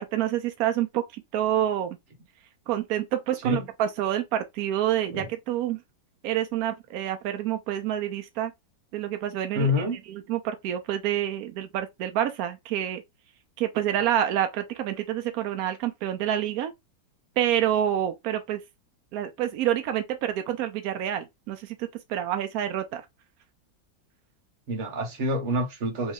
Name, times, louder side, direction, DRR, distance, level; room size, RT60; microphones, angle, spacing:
voice 1, 0.0-2.0 2.7-5.8 6.2-8.5 8.9-9.7 10.1-13.0 13.6-16.7 17.4-18.6 19.1-23.0, right 11 dB, 85° right, 0.7 m, -27 dB
voice 2, 9.5-10.0 24.7-26.1, left 1 dB, 45° right, 1.2 m, -27 dB
3.3 x 3.1 x 3.5 m
omnidirectional pair, 2.1 m